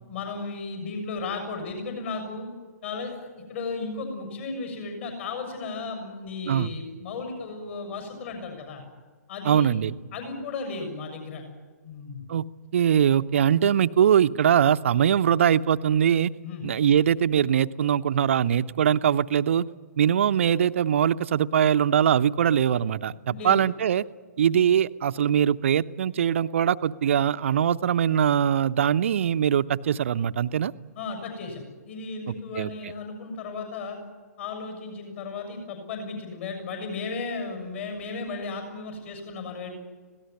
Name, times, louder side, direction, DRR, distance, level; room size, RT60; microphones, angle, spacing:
voice 1, 0.1-2.5 2.8-8.8 9.3-9.7 10.1-11.4 11.8-12.2 16.4-16.6 23.2-23.6 30.9-34.0 34.4-39.7, left 4 dB, 45° left, 5 dB, 6.8 m, -35 dB
voice 2, 9.4-9.9 12.3-12.5 12.7-16.3 16.6-19.7 20.0-24.1 24.4-30.7 32.6-32.7, right 9 dB, 45° right, 13 dB, 0.7 m, -22 dB
25.5 x 18.0 x 9.7 m, 1.4 s
figure-of-eight pair, 125°, 9 cm